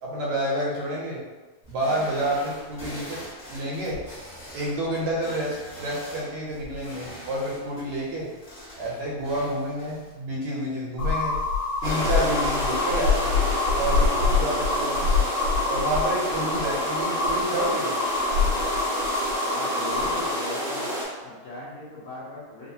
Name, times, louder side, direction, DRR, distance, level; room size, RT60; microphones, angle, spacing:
voice 1, 0.0-1.2 1.7-3.2 3.5-4.0 4.5-8.3 8.8-11.3 11.8-13.2 13.8-15.0 15.7-17.9, right 1 dB, 75° right, -5 dB, 2.1 m, -29 dB
sound 1, 1.6-10.1, equal, 35° left, 0.9 m, -43 dB
sound 2, 11.0-20.3, left 4 dB, 55° left, 1.2 m, -25 dB
sound 3, 11.8-21.0, equal, 40° right, 0.9 m, -29 dB
voice 2, 19.5-20.9 21.2-22.7, left 1 dB, 80° left, -10 dB, 1.3 m, -38 dB
4.6 x 2.1 x 2.6 m, 1.2 s
omnidirectional pair, 3.4 m